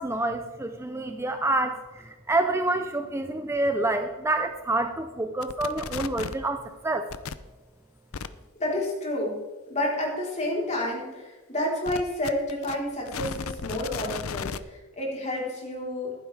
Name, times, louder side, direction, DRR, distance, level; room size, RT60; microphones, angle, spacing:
voice 1, 0.0-7.1, right 2 dB, 15° right, 6 dB, 0.6 m, -27 dB
sound 1, 5.4-6.4 7.1-7.3 8.1-8.3 11.9-14.6, left 5 dB, 75° left, 0.6 m, -34 dB
voice 2, 8.6-9.4 9.7-16.1, left 1 dB, 35° left, -3 dB, 4.1 m, -30 dB
15.0 x 11.5 x 3.5 m, 1.2 s
head